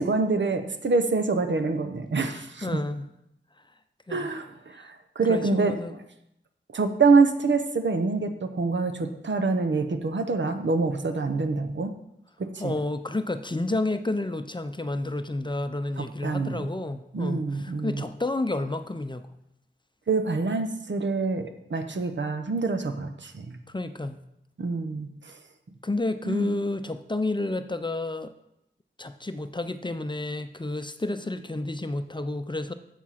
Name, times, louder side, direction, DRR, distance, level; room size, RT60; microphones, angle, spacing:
voice 1, 0.0-2.8 4.1-5.7 6.7-11.9 12.4-12.7 16.0-16.7 17.1-18.1 20.1-23.6 24.6-25.4 26.2-26.5, right 4 dB, 70° right, 7 dB, 0.8 m, -26 dB
voice 2, 2.6-3.1 4.1-4.3 4.8-4.9 5.3-5.9 12.6-19.3 23.7-24.2 25.8-28.3 29.0-32.7, left 2 dB, 25° left, 9 dB, 0.6 m, -30 dB
7.3 x 7.2 x 5.8 m, 0.80 s
wide cardioid pair, 65°, 19 cm